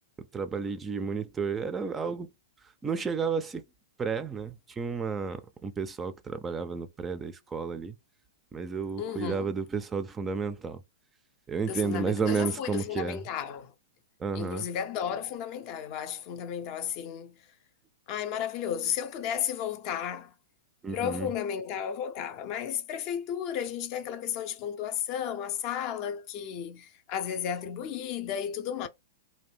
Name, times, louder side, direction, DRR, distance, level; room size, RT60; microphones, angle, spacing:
voice 1, 0.3-2.3 2.8-3.6 4.0-7.9 8.5-10.8 11.5-13.2 14.2-14.7 20.8-21.3, right 5 dB, 20° right, 0.3 m, -32 dB
voice 2, 9.0-9.5 11.7-13.7 14.3-17.4 18.1-20.3 20.9-28.9, left 9 dB, 45° left, 0.4 m, -33 dB
2.6 x 2.1 x 3.2 m
hypercardioid pair, 115°, 0 cm